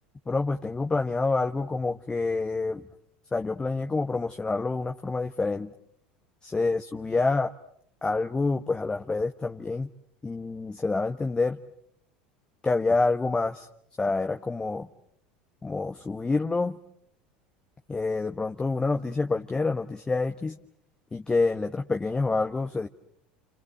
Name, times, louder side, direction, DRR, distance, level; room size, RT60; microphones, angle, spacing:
voice 1, 0.3-2.9 3.3-5.7 6.4-7.5 8.0-9.9 10.2-11.6 12.6-13.7 14.0-14.9 15.6-16.8 17.9-20.6 21.1-22.9, left 3 dB, 15° left, 6 dB, 1.3 m, -27 dB
29.0 x 28.5 x 6.7 m, 0.70 s
hypercardioid pair, 80°, 5 cm